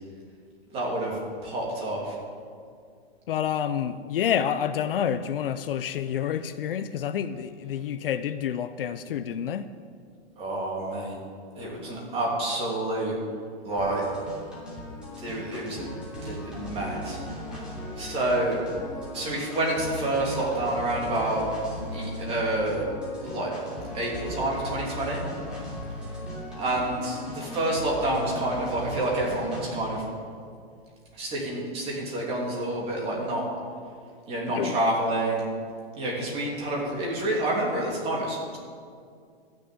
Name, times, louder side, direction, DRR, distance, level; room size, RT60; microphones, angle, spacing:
voice 1, 0.7-2.1 10.4-11.2 11.6-13.1 13.6-14.0 15.2-15.9 16.2-17.2 18.0-18.6 19.1-21.4 21.9-22.9 23.2-23.5 23.9-25.2 26.6-30.0 31.1-33.4 34.3-35.4 36.0-38.6, right 1 dB, 20° right, -3 dB, 2.9 m, -28 dB
voice 2, 3.3-9.7 34.6-34.8, left 9 dB, 60° left, 11 dB, 0.6 m, -28 dB
sound 1, 13.8-29.8, equal, 5° right, 2.9 m, -37 dB
13.5 x 6.7 x 9.2 m, 2.2 s
hypercardioid pair, 165°, 32 cm